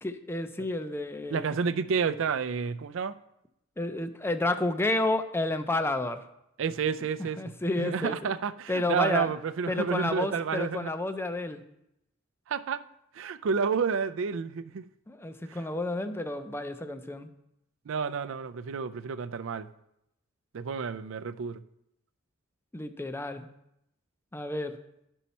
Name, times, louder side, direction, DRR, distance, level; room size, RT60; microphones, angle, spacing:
voice 1, 0.0-1.6 3.8-6.2 7.4-8.2 8.7-9.3 9.7-11.6 15.1-17.3 22.7-23.5 24.3-24.8, left 2 dB, 10° left, 0.5 m, -30 dB
voice 2, 1.3-3.2 6.6-10.9 12.5-12.8 13.1-14.9 15.5-15.6 17.9-19.7 20.5-21.6, right 6 dB, 70° right, 0.4 m, -30 dB
11.5 x 5.5 x 4.2 m
head